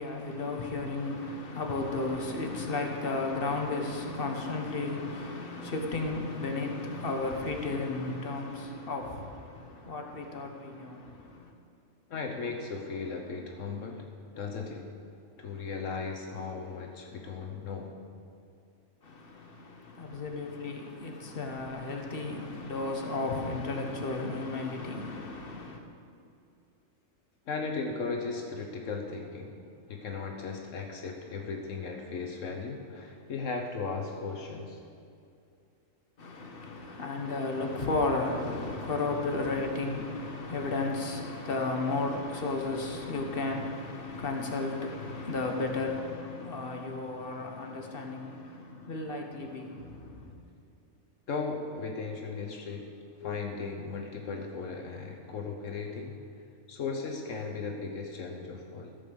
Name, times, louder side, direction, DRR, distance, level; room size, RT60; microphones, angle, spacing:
voice 1, 0.0-11.5 19.0-25.8 36.2-50.3, left 3 dB, 45° left, 1.3 m, -34 dB
voice 2, 12.1-15.0 15.4-18.0 27.5-29.6 29.9-34.8 51.3-56.2 56.7-59.0, left 4 dB, 70° left, 1.2 m, -37 dB
14.0 x 5.4 x 6.9 m
omnidirectional pair, 1.4 m